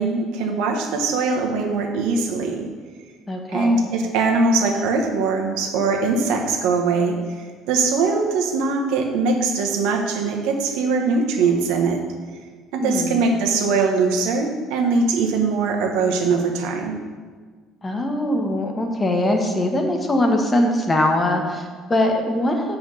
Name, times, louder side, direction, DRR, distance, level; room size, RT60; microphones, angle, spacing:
voice 1, 0.0-2.7 3.5-12.0 12.7-16.9 22.5-22.7, right 4 dB, 85° right, 2 dB, 1.3 m, -21 dB
voice 2, 3.3-3.8 12.8-13.2 17.8-22.8, left 1 dB, 20° left, 3 dB, 1.3 m, -22 dB
7.6 x 5.1 x 6.4 m, 1.5 s
cardioid pair, 120°, 0 cm